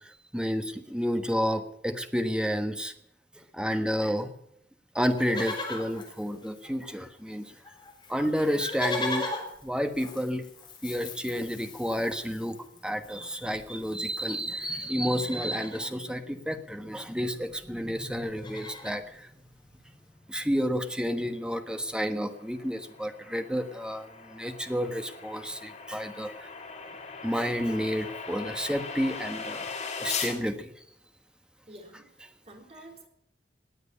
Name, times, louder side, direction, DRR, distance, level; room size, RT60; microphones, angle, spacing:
voice 1, 0.0-2.9 3.5-4.3 4.9-7.5 8.1-9.3 9.6-10.5 10.8-12.6 12.8-19.3 20.3-26.5 27.2-29.6 30.0-30.7, equal, 5° right, 7 dB, 1.3 m, -30 dB
Livestock farm animals working animals, 5.0-7.1 7.3-7.4 7.6-14.6 15.0-15.9 17.2-17.3 17.4-17.7 18.1-19.0 19.6-19.7, left 2 dB, 25° left, 3.7 m, -39 dB
sound 1, 21.7-30.4, left 5 dB, 45° left, 2.8 m, -39 dB
voice 2, 31.7-32.1 32.4-33.1, right 1 dB, 35° right, 4 dB, 3.7 m, -49 dB
19.5 x 8.0 x 8.5 m, 0.76 s
head